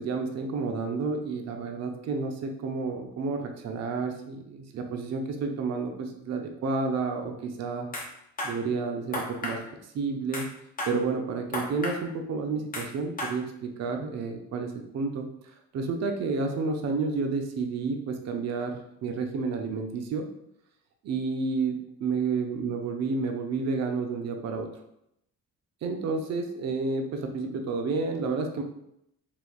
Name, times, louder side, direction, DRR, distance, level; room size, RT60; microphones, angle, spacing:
voice 1, 0.0-7.9 8.4-9.6 9.9-10.5 10.9-15.3 15.7-18.7 19.0-20.3 21.0-24.7 25.8-28.6, right 4 dB, 50° right, 4 dB, 0.5 m, -30 dB
sound 1, 7.9-8.1 8.4-8.5 9.1-9.6 10.3-10.5 10.8-10.9 11.5-12.0 12.7-12.9 13.2-13.3, left 1 dB, 25° left, 0.9 m, -32 dB
3.0 x 2.9 x 2.2 m, 0.78 s
cardioid pair, 90°, 35 cm